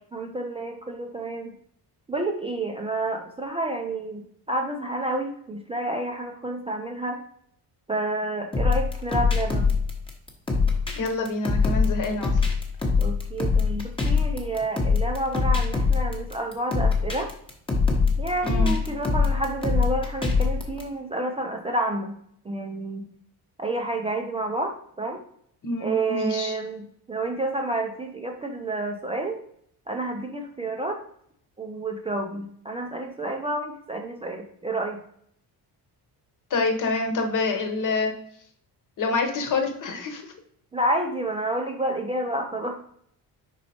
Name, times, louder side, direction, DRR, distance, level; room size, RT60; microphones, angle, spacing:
voice 1, 0.1-1.5 2.1-7.2 7.9-9.7 13.0-17.3 18.2-22.1 22.4-23.0 23.6-25.2 25.8-29.4 29.9-31.0 31.6-35.0 40.7-42.7, right 2 dB, 15° right, 2 dB, 0.4 m, -29 dB
sound 1, 8.5-20.8, left 4 dB, 15° left, 0.9 m, -23 dB
voice 2, 11.0-12.5 18.4-18.7 25.6-26.5 36.5-38.1 39.0-40.3, left 3 dB, 50° left, 5 dB, 1.1 m, -27 dB
5.4 x 4.2 x 4.3 m, 0.65 s
cardioid pair, 165°, 40 cm